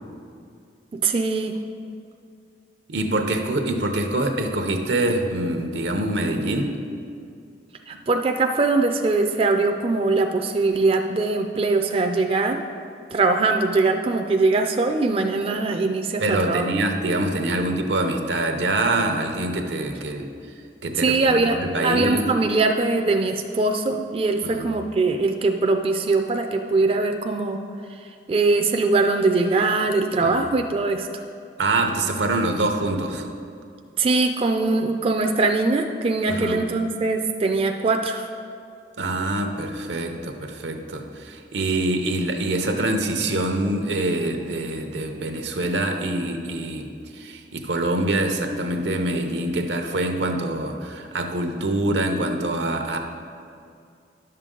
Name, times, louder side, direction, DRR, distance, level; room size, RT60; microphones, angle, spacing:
voice 1, 0.9-1.6 7.9-12.7 13.1-16.7 21.0-27.6 28.3-31.1 34.0-38.3, right 3 dB, 35° right, 4 dB, 0.4 m, -22 dB
voice 2, 2.9-6.7 16.2-20.3 20.8-22.3 24.4-24.7 30.2-30.4 31.6-33.3 36.3-36.6 39.0-53.0, right 2 dB, 85° right, 5 dB, 0.8 m, -25 dB
10.5 x 6.7 x 3.8 m, 2.4 s
head